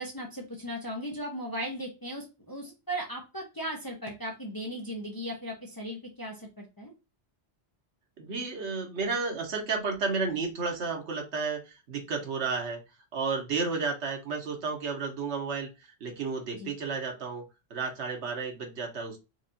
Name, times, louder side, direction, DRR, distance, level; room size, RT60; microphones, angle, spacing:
voice 1, 0.0-6.9 16.5-16.7, equal, 20° left, 0 dB, 0.8 m, -37 dB
voice 2, 8.2-12.8 13.1-15.7 16.0-17.4 17.7-19.2, right 4 dB, 85° right, 3 dB, 1.3 m, -32 dB
4.6 x 2.6 x 2.7 m, 0.27 s
omnidirectional pair, 1.1 m